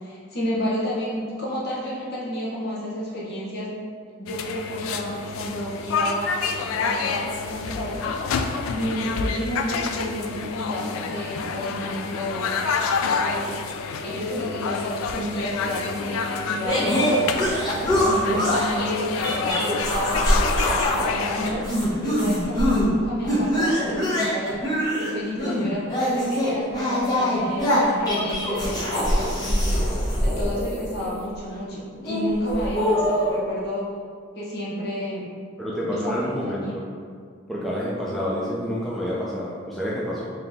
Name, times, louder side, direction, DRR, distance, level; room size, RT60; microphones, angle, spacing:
voice 1, 0.0-3.7 4.2-6.3 6.7-12.5 13.2-13.6 14.0-17.4 17.9-29.8 30.2-33.9 34.3-35.2 35.9-36.2 36.5-36.7, equal, 50° left, -6 dB, 0.9 m, -31 dB
sound 1, 4.3-21.5, left 5 dB, 80° left, 0.3 m, -28 dB
sound 2, 16.7-18.8 19.2-21.1 21.4-22.9 23.3-31.2 32.0-33.4, equal, 20° left, 0.9 m, -23 dB
voice 2, 35.6-36.8 37.5-40.3, equal, ahead, -8 dB, 0.4 m, -28 dB
3.7 x 2.9 x 3.5 m, 2.1 s
head